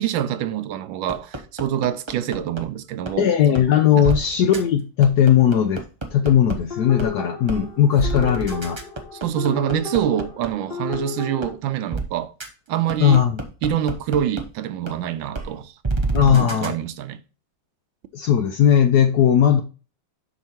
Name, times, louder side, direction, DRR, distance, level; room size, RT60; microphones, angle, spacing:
voice 1, 0.0-3.3 3.8-4.1 8.1-8.3 9.1-12.3 12.7-13.3 13.6-15.7 16.3-17.2, right 10 dB, 75° right, 1.3 m, -26 dB
sound 1, 1.1-2.6 3.1-3.2 3.5-3.6 4.0-4.2 4.5-4.6 5.0-6.5 7.0-7.1 7.5-7.6 8.0-10.5 10.9-11.0 11.4-11.5 11.9-12.0 12.4-12.5 12.9-14.4 14.9-15.0 15.3-15.4 15.8-16.7, right 3 dB, 30° right, 0.5 m, -27 dB
voice 2, 3.2-5.8 6.1-8.8 13.0-13.4 16.1-16.8 18.1-19.6, left 9 dB, 70° left, 0.9 m, -17 dB
sound 2, 6.7-11.5, left 5 dB, 30° left, 1.3 m, -33 dB
7.0 x 5.9 x 4.4 m
omnidirectional pair, 2.2 m